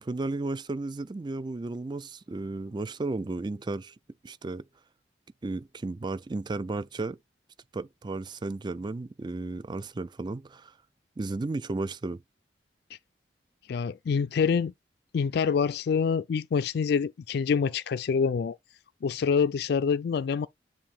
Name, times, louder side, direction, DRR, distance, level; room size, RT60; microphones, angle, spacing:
voice 1, 0.0-3.9 4.2-4.6 5.4-7.2 7.7-10.7 11.2-12.2, right 2 dB, 25° right, 0.4 m, -34 dB
voice 2, 13.7-14.7 15.1-18.6 19.0-20.5, left 6 dB, 60° left, 0.3 m, -26 dB
7.5 x 2.6 x 4.9 m
head